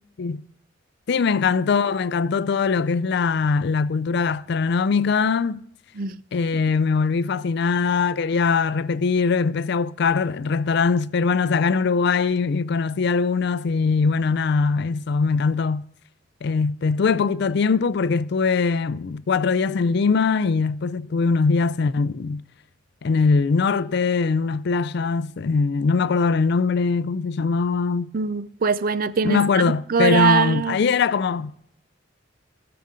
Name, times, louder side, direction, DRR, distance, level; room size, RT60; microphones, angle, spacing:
voice 1, 1.1-5.6 6.3-15.8 16.4-22.4 23.0-28.1 29.2-31.5, left 5 dB, 60° left, 0.4 m, -21 dB
voice 2, 28.1-29.6 29.9-30.8, right 6 dB, 45° right, 0.5 m, -22 dB
14.0 x 6.9 x 5.0 m
head